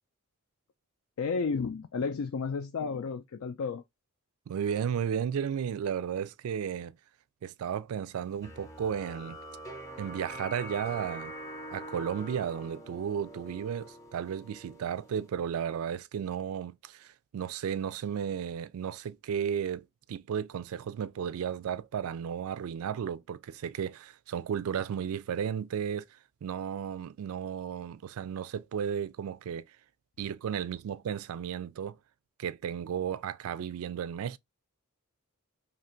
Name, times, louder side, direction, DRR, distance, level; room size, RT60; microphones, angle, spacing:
voice 1, 1.2-3.8, left 5 dB, 70° left, 0.4 m, -32 dB
voice 2, 4.5-7.0 7.4-9.4 10.0-11.3 11.7-26.1 26.4-29.7 30.2-32.0 32.4-34.4, right 8 dB, 75° right, 0.3 m, -34 dB
sound 1, 8.4-15.3, right 1 dB, 15° left, 0.6 m, -44 dB
2.9 x 2.5 x 4.3 m
head